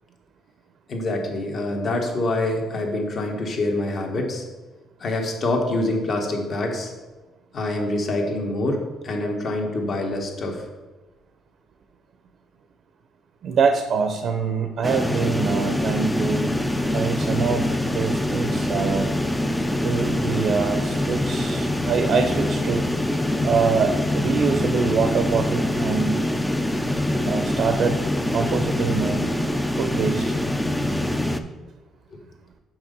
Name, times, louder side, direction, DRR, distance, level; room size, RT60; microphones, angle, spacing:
voice 1, 0.9-4.4 5.0-6.9 7.5-10.6, left 2 dB, 45° left, 2 dB, 1.3 m, -25 dB
voice 2, 13.4-16.6 16.9-19.1 19.8-22.8 23.4-26.2 27.2-28.0 28.3-29.3 29.8-30.4, right 5 dB, 55° right, 7 dB, 0.6 m, -24 dB
sound 1, 14.8-31.4, left 1 dB, 5° left, 0.4 m, -24 dB
6.0 x 5.2 x 5.3 m, 1.2 s
cardioid pair, 120°, 0 cm